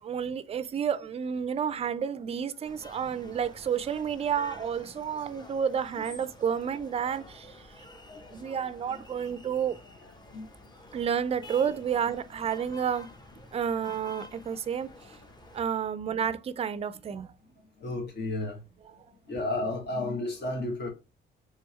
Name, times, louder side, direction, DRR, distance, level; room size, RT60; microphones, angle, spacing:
voice 1, 0.0-7.6 8.3-9.8 10.9-13.1 13.5-14.9 15.5-17.3, right 7 dB, 30° right, 0.4 m, -30 dB
sound 1, 2.6-15.6, left 2 dB, 20° left, 0.8 m, -50 dB
voice 2, 8.1-8.4 8.9-9.0 10.3-10.5 17.8-18.6 19.3-20.9, left 2 dB, 60° left, 1.3 m, -32 dB
3.4 x 3.4 x 3.1 m
cardioid pair, 90°, 20 cm